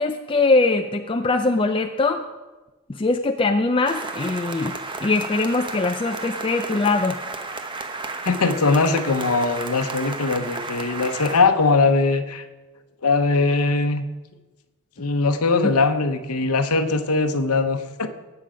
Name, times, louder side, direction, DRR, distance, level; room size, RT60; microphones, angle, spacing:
voice 1, 0.0-2.2 2.9-4.8 5.0-7.2 15.6-15.7, left 3 dB, 25° left, 5 dB, 0.4 m, -22 dB
sound 1, 3.9-11.4, right 3 dB, 20° right, 0.8 m, -33 dB
voice 2, 8.3-12.4 13.0-14.0 15.0-18.1, left 3 dB, 80° left, 8 dB, 0.8 m, -21 dB
18.0 x 7.0 x 5.0 m, 1.2 s
head